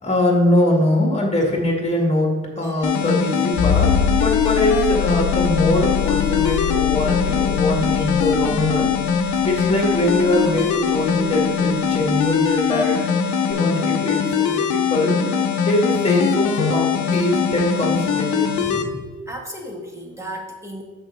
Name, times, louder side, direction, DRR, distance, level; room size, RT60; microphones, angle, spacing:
voice 1, 0.0-13.0 13.4-15.3 15.6-19.0, left 1 dB, 20° left, 0 dB, 2.1 m, -22 dB
sound 1, 2.8-18.8, left 6 dB, 75° left, 0.8 m, -21 dB
sound 2, 3.6-12.0 13.5-13.6, left 8 dB, 40° left, 0.7 m, -25 dB
voice 2, 19.3-20.8, equal, 10° right, 0 dB, 1.5 m, -35 dB
6.2 x 4.7 x 6.2 m, 1.3 s
cardioid pair, 90°, 30 cm